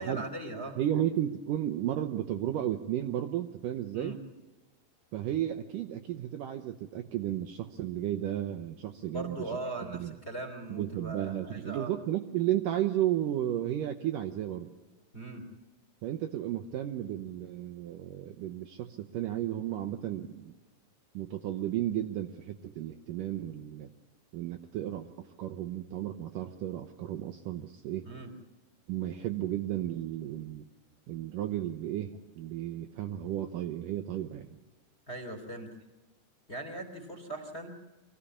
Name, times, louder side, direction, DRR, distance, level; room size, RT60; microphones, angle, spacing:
voice 1, 0.0-0.8 3.9-4.2 9.1-11.9 15.1-15.5 28.0-28.3 35.1-35.7 36.5-37.7, right 2 dB, 20° left, 6 dB, 2.4 m, -39 dB
voice 2, 0.8-4.2 5.1-9.5 9.9-10.1 10.7-14.7 16.0-20.5 21.1-23.9 24.3-28.1 28.9-30.7 31.1-34.6, right 12 dB, 85° right, 6 dB, 1.9 m, -33 dB
24.5 x 16.0 x 8.5 m, 1.2 s
omnidirectional pair, 4.9 m